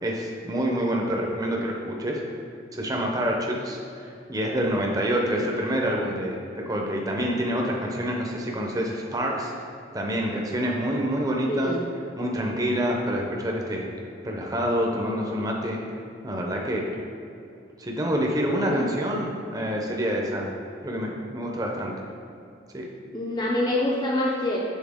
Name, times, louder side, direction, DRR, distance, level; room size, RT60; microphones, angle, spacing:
voice 1, 0.0-2.2 2.7-3.8 4.3-9.5 9.9-11.7 12.2-13.9 14.2-15.8 16.2-16.9 17.8-20.5 20.8-21.9 22.7-22.9, equal, 20° right, -1 dB, 0.6 m, -27 dB
voice 2, 11.5-11.8 18.7-18.9 23.1-24.6, left 1 dB, 20° left, -3 dB, 0.5 m, -26 dB
7.3 x 4.0 x 3.5 m, 2.6 s
head